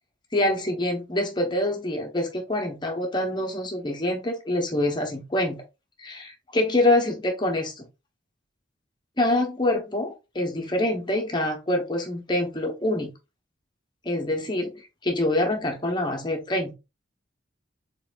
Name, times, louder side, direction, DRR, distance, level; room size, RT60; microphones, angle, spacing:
voice 1, 0.3-5.6 6.0-7.9 9.2-13.1 14.0-16.7, left 1 dB, 25° left, 1.0 m, -25 dB
4.0 x 3.6 x 2.4 m
head